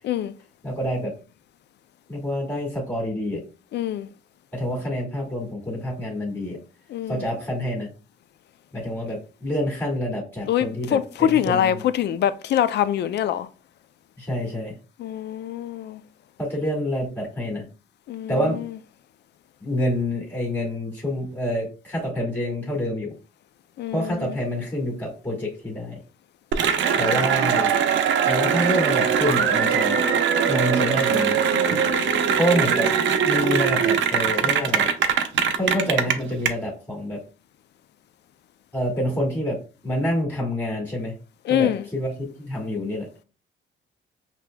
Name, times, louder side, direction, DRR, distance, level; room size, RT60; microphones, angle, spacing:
voice 1, 0.6-1.1 2.1-3.4 4.5-6.6 7.1-7.9 8.7-11.0 11.3-11.8 14.2-14.8 16.4-17.6 18.3-18.6 19.6-23.1 23.9-26.0 27.0-27.7 28.3-30.0 30.5-31.4 32.4-32.9 33.3-34.9 35.5-37.2 38.7-41.1 41.5-43.1, equal, 10° left, 1.7 m, -27 dB
voice 2, 3.7-4.1 6.9-7.2 10.5-10.7 10.9-13.5 15.0-16.0 18.1-18.3 23.8-24.3 26.9-27.1 27.6-27.8 28.3-28.4 31.8-32.4 41.5-41.8, left 10 dB, 60° left, 0.4 m, -24 dB
Cheering / Applause, 26.5-36.5, right 7 dB, 75° right, 0.6 m, -21 dB
5.9 x 2.8 x 2.2 m
cardioid pair, 90°, 20 cm